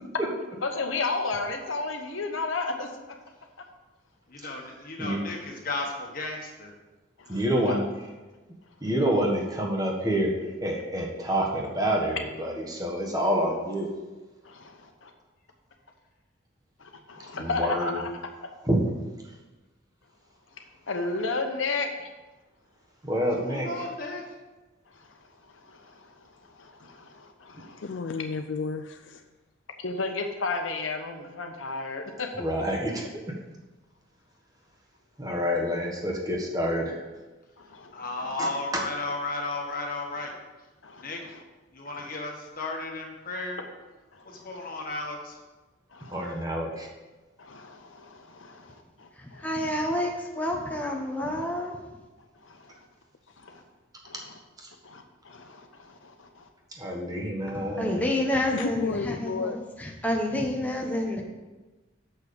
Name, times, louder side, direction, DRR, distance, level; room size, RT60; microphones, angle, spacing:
voice 1, 0.6-2.9 7.2-7.4 7.7-7.8 16.8-18.0 20.9-22.1 24.9-25.2 25.5-27.8 29.8-32.3 37.6-38.0 40.8-41.4 41.8-42.2 43.6-43.7 44.1-44.7 45.9-46.2 47.4-49.5 52.4-52.8 53.4-53.6 54.0-54.2 54.8-56.5, left 3 dB, 85° left, 4 dB, 1.1 m, -33 dB
voice 2, 4.3-6.7 23.4-24.2 37.9-40.3 41.0-41.2 41.7-43.6 44.2-45.4, left 2 dB, 45° left, 1 dB, 1.6 m, -34 dB
voice 3, 7.3-7.8 8.8-10.3 10.6-13.9 17.4-18.0 18.6-18.8 23.0-23.9 27.5-27.6 32.4-33.2 35.2-37.0 38.4-38.8 46.1-46.9 54.6-54.7 56.8-58.0, equal, 20° right, -1 dB, 1.3 m, -28 dB
voice 4, 27.8-29.2 53.3-53.4 58.5-59.6, left 4 dB, 65° left, 7 dB, 0.4 m, -32 dB
voice 5, 49.1-51.8 57.5-61.2, left 1 dB, 10° left, 0 dB, 0.9 m, -29 dB
6.7 x 5.9 x 7.0 m, 1.2 s
head